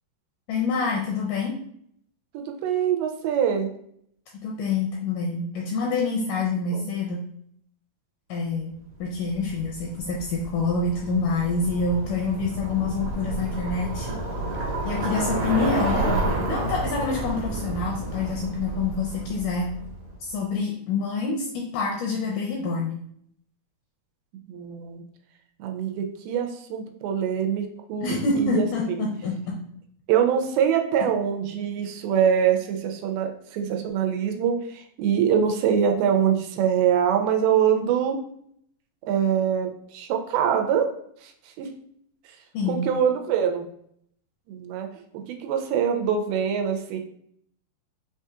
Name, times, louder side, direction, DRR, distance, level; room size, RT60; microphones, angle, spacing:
voice 1, 0.5-1.6 4.4-7.3 8.3-8.8 9.0-14.1 14.9-16.1 16.5-19.7 20.2-23.0 28.0-29.6 42.5-42.8, left 4 dB, 85° left, -1 dB, 1.9 m, -27 dB
voice 2, 2.3-3.7 6.7-6.9 19.3-19.4 24.5-25.0 25.6-29.1 30.1-38.2 39.1-40.9 41.2-41.3 41.6-41.7 42.7-43.7 44.5-44.9 45.3-47.0, right 8 dB, 85° right, 4 dB, 2.4 m, -24 dB
Bicycle, 9.2-20.1, right 2 dB, 65° right, 1.8 m, -30 dB
5.7 x 2.7 x 2.4 m, 0.68 s
omnidirectional pair, 4.2 m